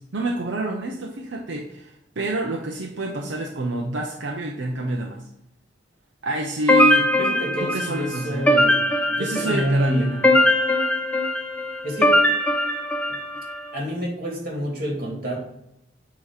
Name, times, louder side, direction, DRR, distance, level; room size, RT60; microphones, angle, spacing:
voice 1, 0.1-5.2 6.2-7.1 7.6-8.5 9.2-10.4, right 1 dB, 80° right, 0 dB, 0.8 m, -27 dB
sound 1, 6.7-13.6, left 1 dB, 10° left, 0.7 m, -21 dB
voice 2, 7.2-8.8 9.1-10.1 11.8-12.2 13.7-15.4, equal, 50° right, -1 dB, 2.6 m, -27 dB
8.1 x 3.1 x 4.9 m, 0.82 s
head